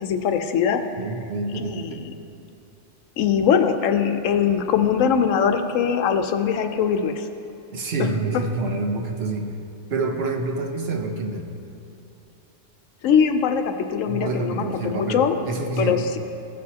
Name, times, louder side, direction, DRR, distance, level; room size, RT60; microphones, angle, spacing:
voice 1, 0.0-0.8 1.5-2.0 3.2-7.3 13.0-15.3 15.8-16.2, left 7 dB, 90° left, 7 dB, 1.0 m, -21 dB
voice 2, 1.0-2.1 7.7-9.5 9.9-11.5 14.0-16.0, right 3 dB, 55° right, 3 dB, 1.0 m, -27 dB
16.0 x 6.5 x 2.8 m, 2.7 s
omnidirectional pair, 1.3 m